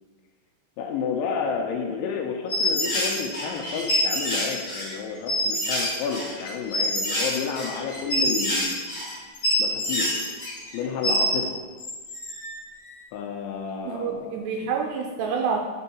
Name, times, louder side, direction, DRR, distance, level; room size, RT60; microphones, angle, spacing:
voice 1, 0.8-8.8 9.6-10.2 10.7-11.6 13.1-14.3, left 6 dB, 85° left, 2 dB, 3.0 m, -31 dB
sound 1, 2.5-11.4 11.8-12.6, equal, 30° left, 2.3 m, -26 dB
voice 2, 13.9-15.7, right 5 dB, 85° right, 2 dB, 2.4 m, -28 dB
9.6 x 4.5 x 4.2 m, 1.4 s
omnidirectional pair, 5.4 m